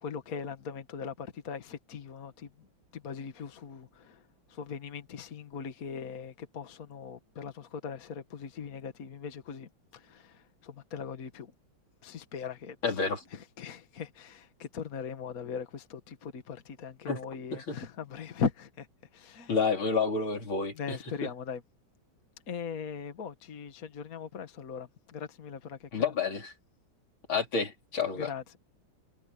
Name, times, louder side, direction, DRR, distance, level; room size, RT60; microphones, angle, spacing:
voice 1, 0.0-2.7 2.9-11.5 12.0-13.0 13.3-18.9 19.1-19.6 20.7-21.6 22.5-26.1 28.1-28.6, left 6 dB, 45° left, 1.9 m, -40 dB
voice 2, 12.8-13.2 17.1-17.2 17.7-17.8 19.5-21.0 25.9-26.5 27.3-28.3, left 4 dB, 85° left, 4.6 m, -29 dB
omnidirectional pair, 2.2 m